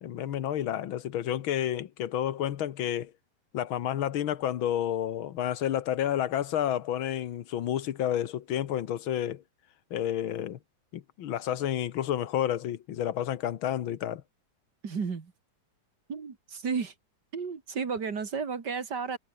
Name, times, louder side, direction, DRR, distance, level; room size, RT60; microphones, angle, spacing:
voice 1, 0.0-3.1 3.5-9.4 9.9-10.6 10.9-14.2, left 11 dB, 85° left, 1.9 m, -30 dB
voice 2, 14.8-15.3 16.1-16.9 17.3-19.2, right 5 dB, 55° right, 2.8 m, -33 dB
omnidirectional pair, 2.2 m